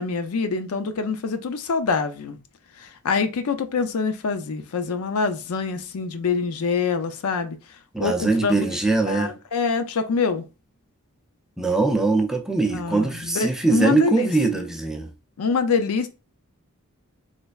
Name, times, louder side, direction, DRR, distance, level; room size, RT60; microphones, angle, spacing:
voice 1, 0.0-2.4 2.8-7.6 8.0-8.6 9.1-10.4 12.7-14.3 15.4-16.1, left 5 dB, 75° left, 0.5 m, -25 dB
voice 2, 7.9-9.4 11.6-15.1, right 3 dB, ahead, 0.4 m, -22 dB
3.2 x 3.1 x 2.3 m
head